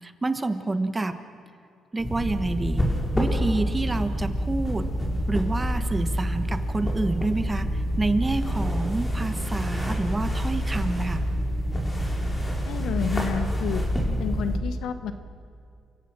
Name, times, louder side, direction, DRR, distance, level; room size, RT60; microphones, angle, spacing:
voice 1, 0.0-1.1 1.9-2.8 3.1-4.9 5.3-11.2, right 2 dB, 20° right, 9 dB, 1.3 m, -28 dB
sound 1, 2.0-14.6, equal, 20° left, 4.8 m, -27 dB
voice 2, 12.6-13.8 14.2-15.1, left 7 dB, 80° left, 10 dB, 1.2 m, -30 dB
29.0 x 16.5 x 6.1 m, 2.4 s
cardioid pair, 90°, 0 cm